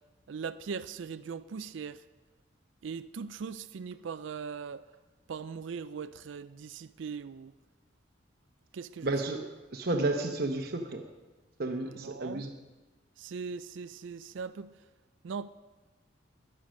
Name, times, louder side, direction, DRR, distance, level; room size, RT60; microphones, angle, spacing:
voice 1, 0.3-2.0 2.8-4.9 5.3-7.5 8.7-9.1 11.8-12.5 13.2-14.8 15.2-15.5, right 5 dB, 70° right, 0.4 m, -40 dB
voice 2, 9.0-11.0 11.6-12.5, right 2 dB, 50° right, 0.9 m, -32 dB
22.0 x 7.7 x 6.4 m
head